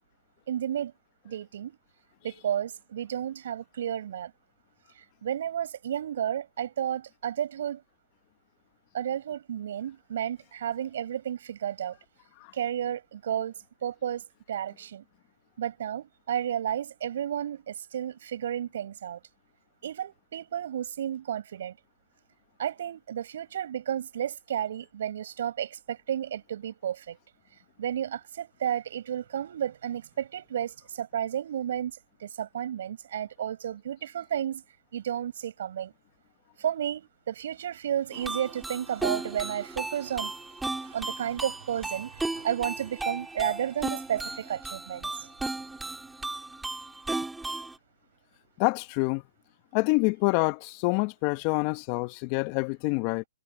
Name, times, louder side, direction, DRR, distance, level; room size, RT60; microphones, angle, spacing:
voice 1, 0.5-0.9 1.2-1.8 2.2-4.3 5.2-7.8 8.9-12.0 12.5-13.5 13.8-14.2 14.5-15.0 15.6-19.2 19.8-21.8 22.6-27.2 27.8-34.6 34.9-35.9 36.6-40.3 40.9-45.3, right 10 dB, 60° right, 7.8 m, -32 dB
sound 1, 38.1-47.8, right 2 dB, 5° right, 1.9 m, -35 dB
voice 2, 48.6-49.2 49.7-53.2, left 26 dB, 35° left, 1.1 m, -26 dB
hypercardioid pair, 135°, 0 cm